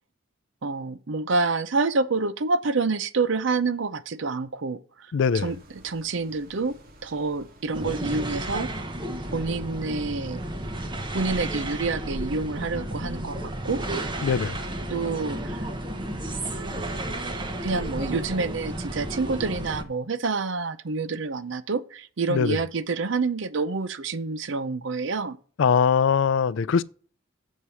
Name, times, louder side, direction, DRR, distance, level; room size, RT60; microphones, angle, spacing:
voice 1, 0.6-4.8 5.4-5.6 5.8-6.7 7.0-8.7 9.3-10.4 11.1-13.8 14.9-15.6 17.6-25.4, right 3 dB, 65° right, 0.6 m, -27 dB
voice 2, 5.1-5.6 14.2-14.6 22.3-22.6 25.6-26.8, left 6 dB, 65° left, 0.4 m, -22 dB
sound 1, 5.3-12.3, right 1 dB, 50° right, 1.4 m, -52 dB
sound 2, 7.7-19.8, right 1 dB, 25° right, 0.9 m, -32 dB
7.3 x 4.7 x 6.8 m
head